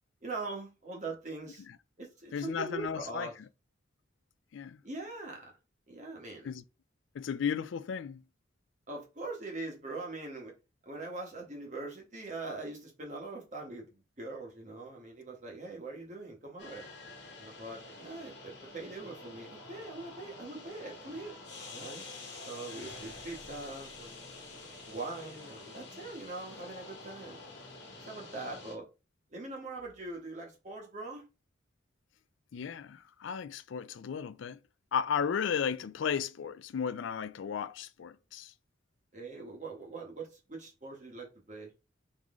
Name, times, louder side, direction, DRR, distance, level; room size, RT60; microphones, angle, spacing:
voice 1, 0.2-1.6 2.0-3.3 4.8-5.5 5.9-6.5 8.9-10.5 10.8-16.8 17.4-21.4 21.7-22.1 22.4-24.3 24.9-27.4 28.0-28.9 29.3-31.2 39.1-41.7, right 3 dB, 40° right, 1.3 m, -42 dB
voice 2, 2.3-3.3 4.5-4.8 6.4-6.6 7.1-8.2 32.5-34.6 34.9-38.5, left 7 dB, 75° left, 0.4 m, -34 dB
sound 1, 16.6-28.8, left 2 dB, 60° left, 1.3 m, -48 dB
3.8 x 3.1 x 3.6 m
head